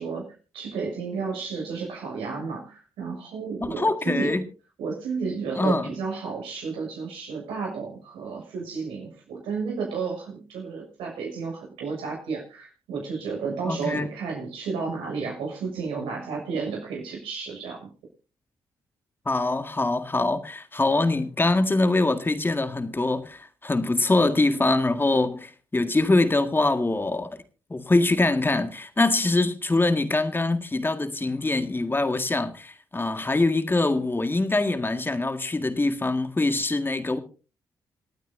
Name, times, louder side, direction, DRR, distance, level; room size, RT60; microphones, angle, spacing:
voice 1, 0.0-4.3 4.8-17.9, right 5 dB, 85° right, 6.6 m, -32 dB
voice 2, 3.6-4.4 5.6-5.9 13.7-14.1 19.3-27.4 27.7-37.2, left 2 dB, 25° left, 1.9 m, -24 dB
27.5 x 9.2 x 2.7 m
supercardioid pair, 50°, 9 cm